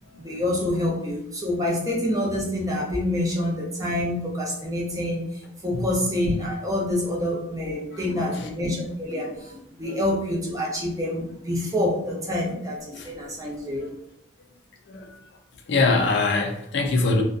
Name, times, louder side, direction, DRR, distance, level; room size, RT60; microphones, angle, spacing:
voice 1, 0.2-5.2 5.6-13.9, left 1 dB, 15° right, -3 dB, 0.5 m, -27 dB
voice 2, 7.9-8.5 9.2-9.3 9.8-10.2 12.9-13.1 13.8-13.9 14.9-15.3 15.7-17.2, left 3 dB, 60° left, 4 dB, 0.3 m, -25 dB
2.5 x 2.2 x 2.5 m, 0.74 s
head